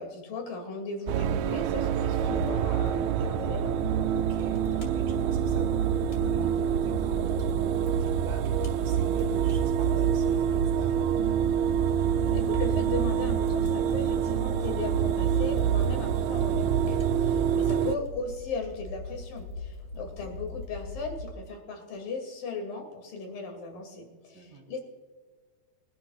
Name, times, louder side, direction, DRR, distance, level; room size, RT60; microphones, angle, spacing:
voice 1, 0.0-3.8 12.3-24.8, left 4 dB, 65° left, 3 dB, 4.0 m, -37 dB
sound 1, 1.1-18.0, right 9 dB, 80° right, 2.4 m, -26 dB
Fire, 2.0-21.3, left 3 dB, 30° left, 2.1 m, -40 dB
voice 2, 4.1-11.1 15.7-16.1 17.3-17.7 19.9-20.3 24.3-24.7, right 2 dB, 55° right, -5 dB, 4.3 m, -45 dB
23.5 x 11.5 x 2.4 m, 1.5 s
omnidirectional pair, 4.4 m